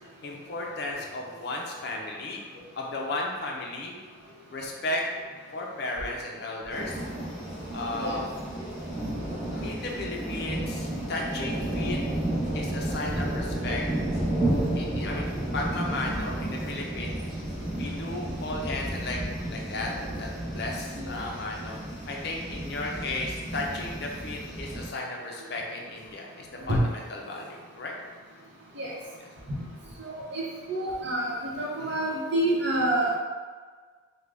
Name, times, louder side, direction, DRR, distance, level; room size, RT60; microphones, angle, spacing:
voice 1, 0.2-2.4 2.8-3.9 4.5-5.0 5.5-7.0 7.7-8.3 9.5-12.0 12.5-13.8 14.6-17.1 17.7-19.2 19.5-21.8 22.1-27.9 31.8-32.0, left 2 dB, 50° left, 0 dB, 0.5 m, -34 dB
sound 1, 6.7-24.9, right 1 dB, ahead, 1.0 m, -32 dB
voice 2, 30.0-30.4 30.7-33.2, right 1 dB, 55° right, -5 dB, 0.8 m, -28 dB
3.6 x 2.1 x 3.3 m, 1.5 s
head